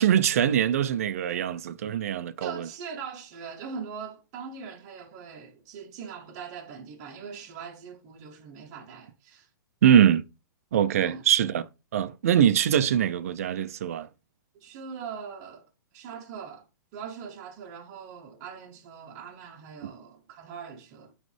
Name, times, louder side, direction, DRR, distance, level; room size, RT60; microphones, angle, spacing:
voice 1, 0.0-2.7 9.8-10.2 10.7-11.6 11.9-14.1, right 9 dB, 45° right, 0.5 m, -23 dB
voice 2, 2.4-9.5 11.0-11.2 14.5-15.7 15.9-16.7 16.9-21.1, right 6 dB, 25° right, 0.8 m, -41 dB
9.2 x 3.2 x 3.2 m
hypercardioid pair, 180°, 11 cm